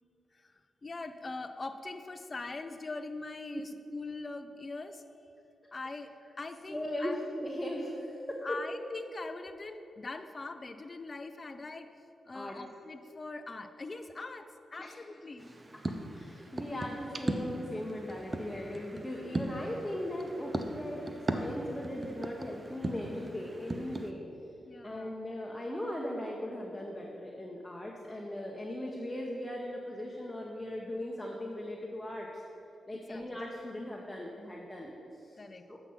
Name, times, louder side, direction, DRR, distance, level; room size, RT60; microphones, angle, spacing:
voice 1, 0.3-5.0 5.7-7.2 8.4-11.9 12.2-15.6 24.6-25.1 32.9-33.2 35.4-35.6, left 3 dB, 40° left, 8 dB, 0.4 m, -42 dB
voice 2, 6.7-8.6 12.3-12.6 14.8-14.9 15.9-24.2 24.8-32.4 32.9-35.4 35.7-35.8, left 1 dB, 15° left, -2 dB, 1.1 m, -38 dB
sound 1, 15.4-24.1, right 2 dB, 35° right, 0.7 m, -38 dB
8.0 x 5.8 x 5.7 m, 2.9 s
supercardioid pair, 50°, 0 cm